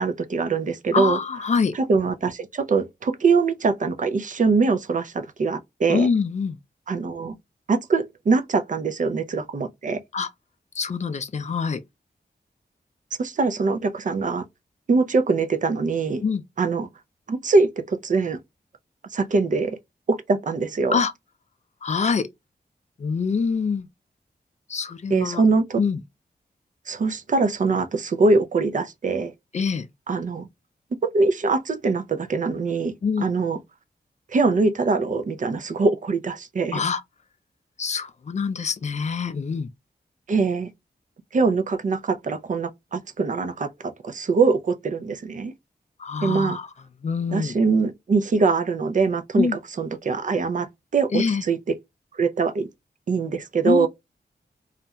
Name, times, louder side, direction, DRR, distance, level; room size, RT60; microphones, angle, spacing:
voice 1, 0.0-1.2 1.7-6.1 6.9-7.4 7.7-10.0 13.2-14.4 14.9-16.2 16.6-16.9 17.3-18.4 19.1-19.8 20.1-21.0 25.1-25.8 26.9-29.3 30.1-30.5 31.0-33.6 34.3-36.8 40.3-40.7 41.3-45.5 46.2-46.6 47.3-49.5 49.8-50.7 50.9-51.6 52.2-52.7 53.1-53.9, right 4 dB, 45° right, 0.4 m, -23 dB
voice 2, 0.9-1.8 5.9-6.6 10.1-10.3 10.8-11.8 16.2-16.4 20.9-21.1 21.8-22.3 23.0-23.9 24.7-25.4 25.8-26.0 29.5-29.9 33.0-33.3 36.7-37.0 37.8-39.7 46.0-46.7 47.0-47.5 49.4-49.6 51.1-51.4 53.7-53.9, left 5 dB, 40° left, 0.4 m, -25 dB
2.4 x 2.1 x 2.7 m
wide cardioid pair, 115°, 18 cm